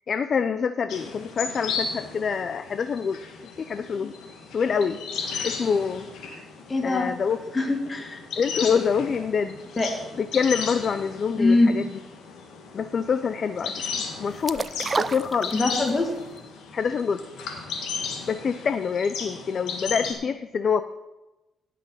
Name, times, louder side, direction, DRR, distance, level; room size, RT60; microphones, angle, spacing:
voice 1, 0.1-3.2 3.6-4.1 4.5-5.0 5.4-6.1 6.8-7.4 8.4-9.6 10.2-11.8 12.7-13.8 14.2-14.7 15.0-15.5 16.7-17.2 18.3-20.8, left 6 dB, 50° left, 10 dB, 0.5 m, -26 dB
sound 1, 0.9-20.1, left 5 dB, 80° left, 2.0 m, -35 dB
voice 2, 6.7-7.1 7.5-8.2 9.8-10.0 11.4-11.8 15.5-16.1, left 2 dB, 25° left, 3 dB, 2.1 m, -22 dB
sound 2, 14.5-16.0 16.4-16.5, right 4 dB, 30° right, 0.5 m, -28 dB
17.0 x 5.9 x 5.6 m, 1.0 s
cardioid pair, 90°, 0 cm